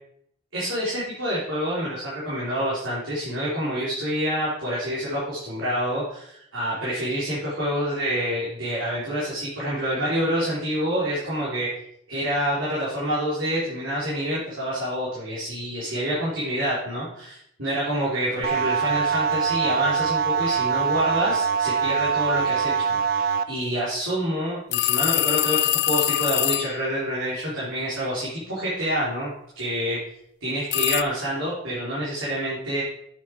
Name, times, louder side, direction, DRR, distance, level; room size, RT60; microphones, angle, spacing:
voice 1, 0.5-11.7 12.1-29.3 29.6-30.0 30.4-32.8, equal, 85° right, -8 dB, 3.7 m, -27 dB
sound 1, 18.4-23.4, right 6 dB, 50° right, 0.5 m, -23 dB
sound 2, 24.7-26.8 30.7-31.0, left 15 dB, 55° left, 0.3 m, -23 dB
8.9 x 7.2 x 4.6 m, 0.71 s
head